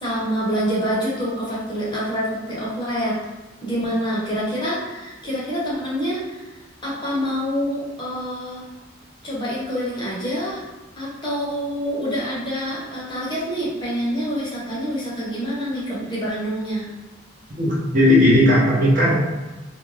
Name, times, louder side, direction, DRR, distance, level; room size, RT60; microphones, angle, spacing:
voice 1, 0.0-3.2 3.6-6.5 6.8-8.6 9.2-10.6 11.0-16.9, equal, 25° left, -7 dB, 0.7 m, -26 dB
voice 2, 17.6-19.1, left 1 dB, 40° right, -5 dB, 0.7 m, -16 dB
2.5 x 2.1 x 3.1 m, 1.1 s
head